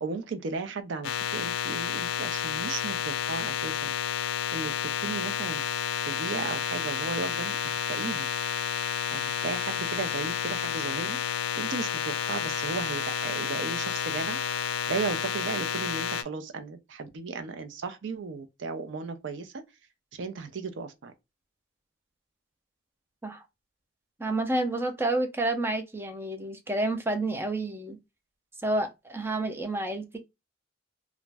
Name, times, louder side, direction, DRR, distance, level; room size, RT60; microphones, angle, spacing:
voice 1, 0.0-3.9 4.5-4.7 5.0-8.3 9.1-11.2 11.6-14.4 14.9-19.5 20.1-21.1, right 4 dB, 65° right, 0.4 m, -35 dB
sound 1, 1.0-16.2, left 8 dB, 80° left, 0.4 m, -30 dB
voice 2, 24.2-28.0 28.6-30.2, right 2 dB, 10° right, 0.4 m, -29 dB
2.4 x 2.0 x 3.2 m
head